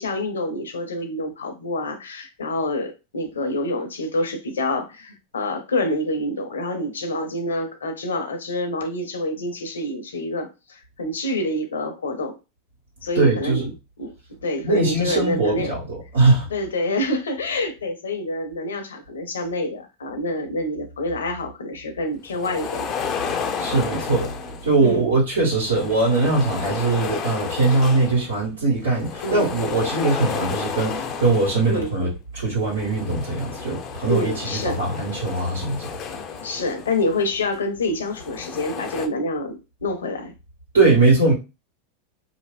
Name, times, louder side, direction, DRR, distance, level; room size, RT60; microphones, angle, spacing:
voice 1, 0.0-12.4 13.0-13.6 14.0-14.1 14.4-15.8 16.5-22.9 24.8-25.1 29.2-29.5 31.7-31.9 34.1-34.8 36.1-40.3, left 1 dB, 80° left, 0.7 m, -27 dB
voice 2, 13.1-13.7 14.6-16.5 23.6-24.3 24.6-36.0 40.7-41.3, right 3 dB, 85° right, 1.5 m, -21 dB
sound 1, 22.3-24.9 25.5-28.4 28.7-32.0 32.6-37.4 38.0-39.1, left 6 dB, 40° left, 0.5 m, -32 dB
2.8 x 2.5 x 3.2 m
hypercardioid pair, 95°, 0 cm